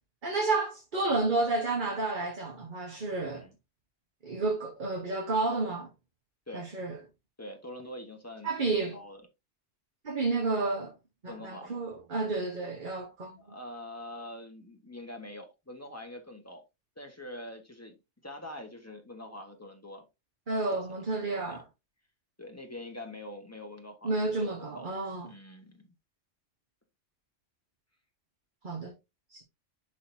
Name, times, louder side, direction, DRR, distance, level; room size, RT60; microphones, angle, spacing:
voice 1, 0.2-3.5 4.2-5.9 6.5-7.0 8.4-9.0 10.0-10.9 11.2-13.4 20.5-21.6 24.0-25.3 28.6-29.0 29.3-29.4, right 3 dB, 40° right, 1.3 m, -31 dB
voice 2, 7.4-8.5 8.9-9.2 11.3-11.8 13.4-16.6 17.0-17.9 18.2-20.0 20.7-21.6 22.4-24.9 25.2-25.8, left 1 dB, 10° left, 1.5 m, -44 dB
10.5 x 4.0 x 2.8 m
omnidirectional pair, 1.3 m